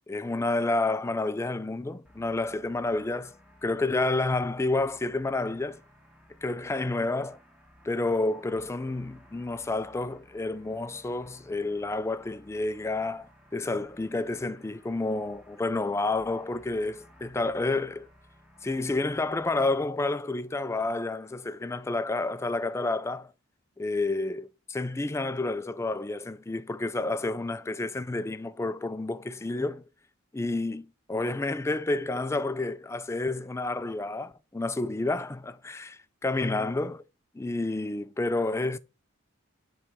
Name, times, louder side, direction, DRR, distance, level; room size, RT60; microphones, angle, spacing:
voice 1, 0.1-3.3 3.6-5.8 6.4-7.4 7.8-18.1 18.6-23.3 23.8-29.8 30.3-37.0 37.3-38.8, left 2 dB, 15° left, 0.3 m, -30 dB
sound 1, 2.0-19.8, equal, 5° right, 1.2 m, -57 dB
7.3 x 3.3 x 5.0 m
head